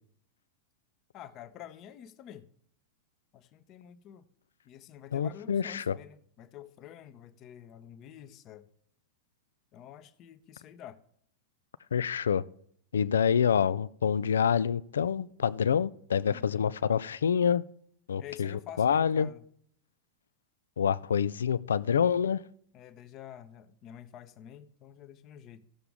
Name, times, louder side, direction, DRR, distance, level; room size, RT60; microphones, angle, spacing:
voice 1, 1.1-2.5 3.3-4.3 4.6-8.7 9.7-11.0 16.3-16.6 18.2-19.4 22.7-25.7, left 10 dB, 35° left, 12 dB, 0.8 m, -48 dB
voice 2, 5.1-6.0 11.9-12.4 12.9-17.6 18.1-19.3 20.8-22.4, left 7 dB, 65° left, 18 dB, 0.4 m, -27 dB
15.5 x 6.8 x 3.6 m, 0.64 s
figure-of-eight pair, 90°, 0 cm